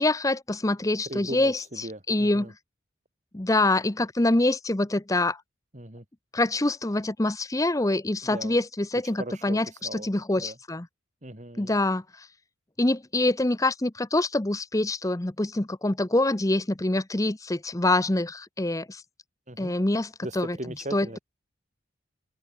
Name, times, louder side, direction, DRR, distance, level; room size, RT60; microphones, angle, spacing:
voice 1, 0.0-2.5 3.3-5.4 6.3-9.7 9.9-10.9 11.6-12.3 12.8-19.0 19.6-20.6 20.9-21.1, left 2 dB, 15° left, 0.8 m, -25 dB
voice 2, 1.1-2.5 5.7-6.0 8.2-8.5 9.0-10.1 10.4-10.6 11.2-11.7 19.5-19.7 20.2-21.2, right 1 dB, 35° right, 3.9 m, -38 dB
open air
head